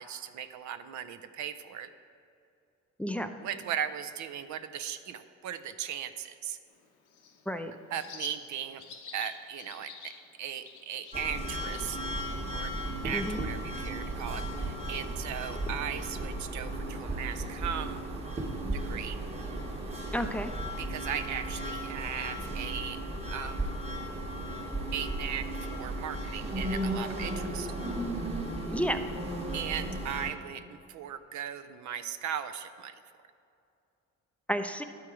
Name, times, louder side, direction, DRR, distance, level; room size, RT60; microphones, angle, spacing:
voice 1, 0.0-1.9 3.4-6.6 7.9-8.8 9.1-12.7 13.0-18.0 18.7-19.2 20.8-23.0 23.3-23.7 24.9-27.7 29.5-32.9, right 9 dB, 70° right, 10 dB, 0.5 m, -38 dB
voice 2, 3.0-3.3 7.5-7.7 13.1-13.4 20.1-20.5 28.7-29.0 34.5-34.8, equal, 5° left, 7 dB, 0.4 m, -31 dB
Bird, 6.7-15.7, left 6 dB, 85° left, 0.9 m, -52 dB
sound 1, 11.1-30.3, right 1 dB, 20° right, 1.1 m, -35 dB
11.5 x 4.5 x 4.8 m, 2.5 s
cardioid pair, 90°, 30 cm